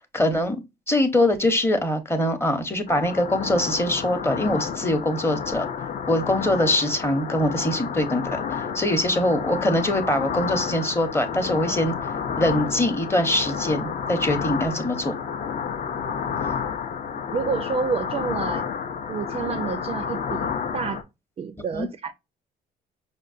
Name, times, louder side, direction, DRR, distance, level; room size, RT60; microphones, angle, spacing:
voice 1, 0.1-0.6 0.9-5.7 6.1-8.2 8.5-11.9 12.4-15.1 21.7-21.9, left 1 dB, 15° left, 0.8 m, -23 dB
sound 1, 2.9-21.0, left 7 dB, 45° left, 0.5 m, -30 dB
voice 2, 17.3-18.7 19.1-21.0 21.4-22.1, right 5 dB, 35° right, 0.4 m, -29 dB
5.0 x 2.1 x 2.4 m
cardioid pair, 100°, 18 cm